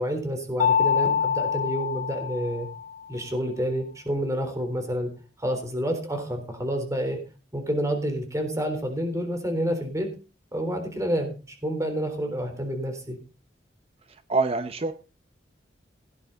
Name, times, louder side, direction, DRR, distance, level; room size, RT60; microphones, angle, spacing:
voice 1, 0.0-2.7 3.1-5.1 5.4-7.2 7.5-10.1 10.5-11.4 11.6-13.2, equal, 15° right, 6 dB, 3.7 m, -28 dB
Mallet percussion, 0.6-3.1, left 7 dB, 45° left, 0.7 m, -25 dB
voice 2, 14.3-14.9, right 3 dB, 30° right, 11 dB, 0.7 m, -24 dB
17.5 x 9.7 x 4.0 m, 0.33 s
head